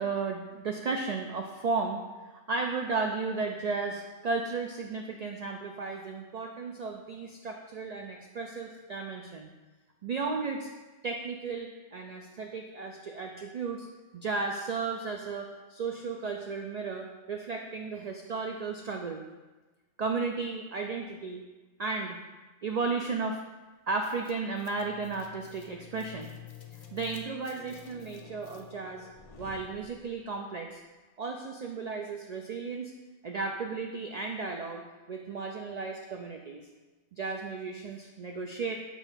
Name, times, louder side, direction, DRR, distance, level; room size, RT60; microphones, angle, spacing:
voice 1, 0.0-2.0 2.5-9.5 10.0-10.7 11.0-13.9 14.1-19.2 20.0-21.4 21.8-22.2 22.6-23.4 23.9-26.3 26.9-29.1 29.4-30.8 31.2-32.9 33.2-36.6 37.1-38.8, right 4 dB, 70° right, 2 dB, 0.3 m, -34 dB
sound 1, 24.0-30.4, left 8 dB, 50° left, 0.4 m, -50 dB
7.0 x 2.5 x 5.6 m, 1.2 s
omnidirectional pair, 1.2 m